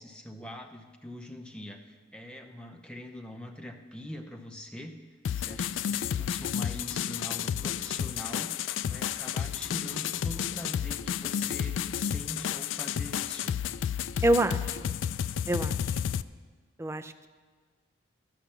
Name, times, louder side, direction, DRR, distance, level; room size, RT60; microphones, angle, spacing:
voice 1, 0.0-5.0 5.3-13.6, left 1 dB, 5° left, 3 dB, 0.8 m, -43 dB
sound 1, 5.2-16.2, left 9 dB, 65° left, 0.3 m, -31 dB
voice 2, 14.2-14.9 15.5-16.0 16.8-17.3, right 1 dB, 15° right, 8 dB, 0.4 m, -27 dB
11.5 x 6.0 x 8.5 m, 1.5 s
head